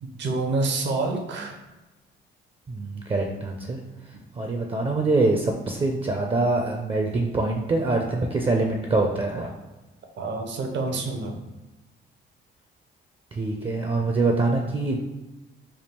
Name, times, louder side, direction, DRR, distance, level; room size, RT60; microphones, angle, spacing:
voice 1, 0.0-1.6 10.2-11.4, right 3 dB, 65° right, 4 dB, 0.7 m, -27 dB
voice 2, 2.7-3.8 4.3-9.5 13.3-15.0, right 2 dB, 25° right, 2 dB, 0.4 m, -24 dB
3.5 x 2.3 x 4.3 m, 1.1 s
cardioid pair, 90°, 20 cm